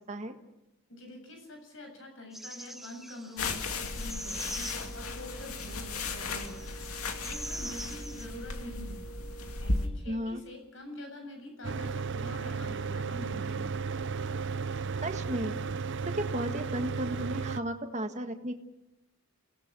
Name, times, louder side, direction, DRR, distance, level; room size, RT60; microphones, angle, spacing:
voice 1, 0.9-9.1 9.6-13.8, left 1 dB, 65° left, 4 dB, 7.5 m, -46 dB
sound 1, 2.3-8.3, right 1 dB, ahead, 0.9 m, -43 dB
sound 2, 3.4-9.9, left 2 dB, 85° left, 2.4 m, -35 dB
voice 2, 10.1-10.4 15.0-18.5, equal, 30° right, 6 dB, 1.8 m, -34 dB
Mechanical fan, 11.6-17.6, right 5 dB, 55° right, 0.7 m, -34 dB
28.5 x 18.5 x 6.2 m, 0.92 s
head